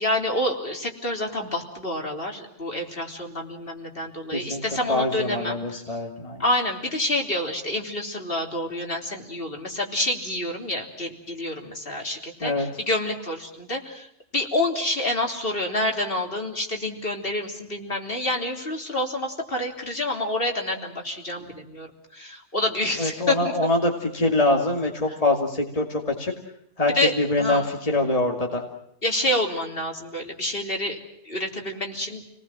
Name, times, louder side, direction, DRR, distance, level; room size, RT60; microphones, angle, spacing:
voice 1, 0.0-5.6 6.4-14.1 14.3-21.9 22.1-23.5 26.9-27.7 29.0-31.0 31.3-32.2, left 1 dB, 50° left, 2 dB, 3.7 m, -28 dB
voice 2, 4.3-4.6 4.9-6.4 12.4-12.7 23.0-26.3 26.8-28.6, left 2 dB, 30° left, 1 dB, 2.7 m, -24 dB
29.5 x 20.0 x 7.6 m, 0.79 s
omnidirectional pair, 1.2 m